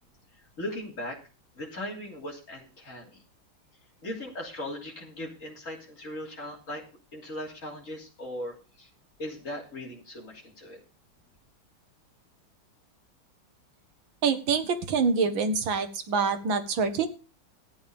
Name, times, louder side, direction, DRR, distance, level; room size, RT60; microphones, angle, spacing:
voice 1, 0.6-1.2 1.6-3.2 4.0-6.8 7.1-8.9 9.2-10.8, left 1 dB, 35° left, -1 dB, 3.4 m, -38 dB
voice 2, 14.2-17.1, right 5 dB, 70° right, 9 dB, 1.9 m, -26 dB
12.5 x 8.8 x 5.1 m, 0.34 s
omnidirectional pair, 2.3 m